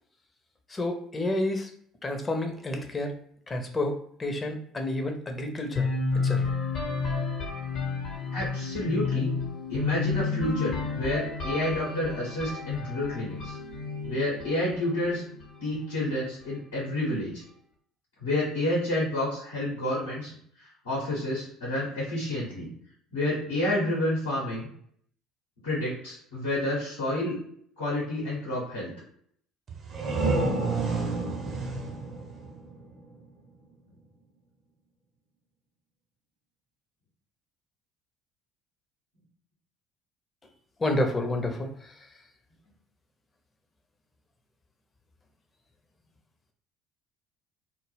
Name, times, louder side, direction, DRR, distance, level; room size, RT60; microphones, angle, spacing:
voice 1, 0.7-1.7 2.0-3.1 3.5-5.9 6.2-6.4 40.8-42.1, left 1 dB, 25° left, 4 dB, 0.5 m, -30 dB
sound 1, 5.7-15.6, left 4 dB, 60° left, 0.7 m, -31 dB
voice 2, 8.3-9.3 9.7-13.6 14.0-15.2 15.6-17.4 18.2-22.7 23.1-24.7 25.6-27.4 27.8-28.9, left 1 dB, 85° left, -7 dB, 0.8 m, -29 dB
sound 2, 29.7-33.3, right 3 dB, 45° right, 0.6 m, -30 dB
2.1 x 2.0 x 3.2 m, 0.65 s
hypercardioid pair, 60°, 0 cm